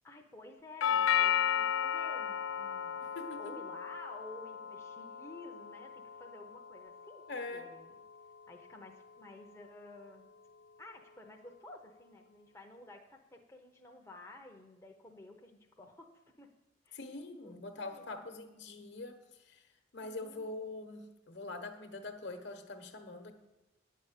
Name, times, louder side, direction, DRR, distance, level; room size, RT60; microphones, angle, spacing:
voice 1, 0.0-7.2 7.5-8.0 8.5-10.3 10.8-16.1 16.4-16.5 16.8-17.0 17.4-17.5 17.8-18.4 20.0-20.5, left 2 dB, 15° left, 1 dB, 0.7 m, -53 dB
Doorbell, 0.8-8.9, left 9 dB, 75° left, 0.3 m, -35 dB
voice 2, 3.0-3.6 7.3-7.7 16.9-19.2 19.4-19.6 19.9-23.3, left 2 dB, 60° left, 7 dB, 1.1 m, -43 dB
9.7 x 5.5 x 8.2 m, 1.0 s
head